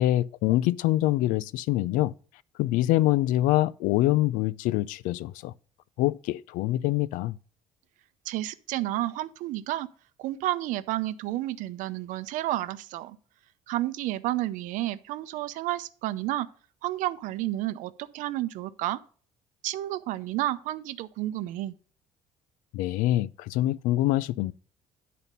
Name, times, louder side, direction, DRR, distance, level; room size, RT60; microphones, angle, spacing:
voice 1, 0.0-2.1 2.6-5.5 6.0-7.4 22.7-24.5, left 15 dB, 85° left, 0.4 m, -25 dB
voice 2, 8.2-9.9 10.2-13.2 13.7-16.5 16.8-19.0 19.6-21.7, right 15 dB, 80° right, 0.6 m, -31 dB
9.1 x 4.3 x 5.2 m
cardioid pair, 110°, 13 cm